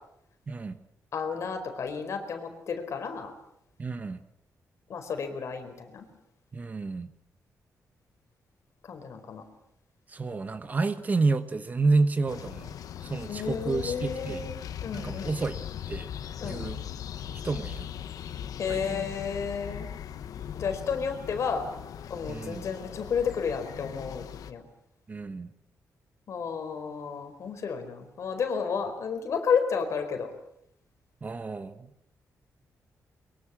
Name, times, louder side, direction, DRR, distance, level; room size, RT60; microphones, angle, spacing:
voice 1, 0.5-0.8 3.8-4.2 6.5-7.1 10.1-12.8 13.0-14.4 14.9-15.6 15.9-16.1 16.4-16.8 17.4-17.9 18.7-19.1 22.3-22.6 25.1-25.5 31.2-31.9, right 3 dB, 25° right, 11 dB, 1.2 m, -29 dB
voice 2, 1.1-3.3 4.9-6.0 8.9-9.4 13.3-14.6 14.8-15.4 16.4-16.7 18.6-19.9 20.5-21.7 22.1-24.6 26.3-30.3, left 6 dB, 55° left, 6 dB, 4.6 m, -32 dB
sound 1, 12.3-24.5, left 9 dB, 80° left, 1.3 m, -39 dB
23.0 x 23.0 x 7.5 m, 0.74 s
wide cardioid pair, 175°, 6 cm